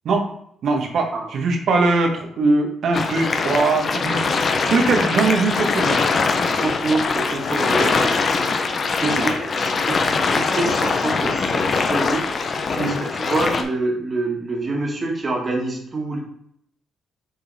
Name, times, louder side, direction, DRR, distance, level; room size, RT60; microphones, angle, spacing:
voice 1, 0.6-4.3 4.7-6.0 9.0-9.3 12.8-13.0, right 3 dB, 65° right, 3 dB, 1.3 m, -21 dB
sound 1, 2.9-13.6, left 4 dB, 45° left, 0.8 m, -22 dB
voice 2, 6.6-8.5 9.0-12.3 12.8-16.2, right 2 dB, 35° right, 0 dB, 1.9 m, -26 dB
6.6 x 3.9 x 4.2 m, 0.70 s
cardioid pair, 90°, 0 cm